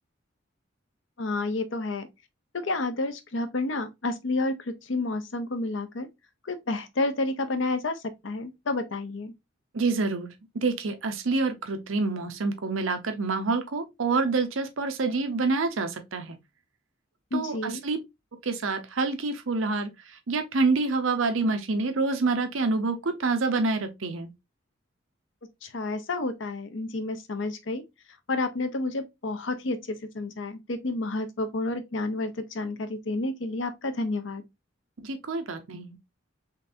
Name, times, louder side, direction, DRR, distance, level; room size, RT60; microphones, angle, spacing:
voice 1, 1.2-2.1 2.5-6.1 6.4-9.3 17.3-17.8 25.6-27.8 28.3-34.4, left 2 dB, 70° left, 0.7 m, -30 dB
voice 2, 9.7-16.4 17.3-18.0 18.4-24.3 35.0-36.0, right 3 dB, 85° right, 0.7 m, -27 dB
3.9 x 3.3 x 2.6 m
head